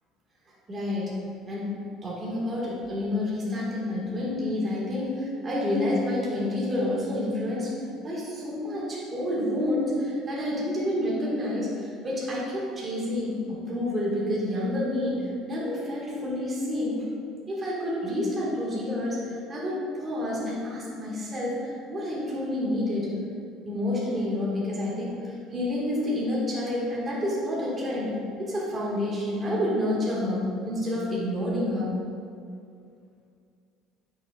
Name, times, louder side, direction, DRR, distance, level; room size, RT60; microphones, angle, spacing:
voice 1, 0.7-1.2 1.5-1.7 2.0-7.8 8.0-17.0 17.5-23.1 23.6-32.0, left 1 dB, 25° right, -6 dB, 1.7 m, -29 dB
10.0 x 6.1 x 2.4 m, 2.4 s
cardioid pair, 135°, 0 cm